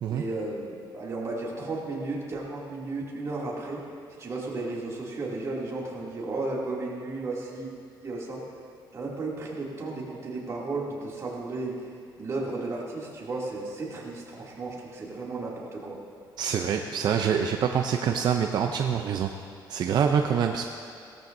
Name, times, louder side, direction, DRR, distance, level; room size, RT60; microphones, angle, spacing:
voice 1, 0.1-3.8 4.2-7.7 8.0-8.4 8.9-11.7 12.2-16.0, right 2 dB, 35° right, -5 dB, 2.7 m, -34 dB
voice 2, 16.4-19.3 19.7-20.7, right 7 dB, 60° right, 4 dB, 0.6 m, -25 dB
17.0 x 13.0 x 2.7 m, 2.4 s
cardioid pair, 130°, 8 cm